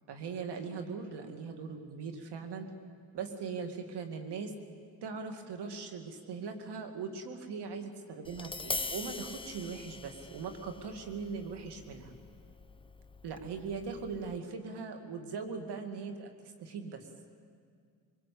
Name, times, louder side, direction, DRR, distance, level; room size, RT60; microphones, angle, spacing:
voice 1, 0.1-2.7 3.1-4.5 5.0-12.1 13.2-17.0, right 5 dB, 80° right, 6 dB, 2.5 m, -40 dB
Tap, 8.2-14.4, left 3 dB, 15° left, 0.8 m, -43 dB
22.5 x 21.0 x 8.6 m, 2.2 s
cardioid pair, 65°, 40 cm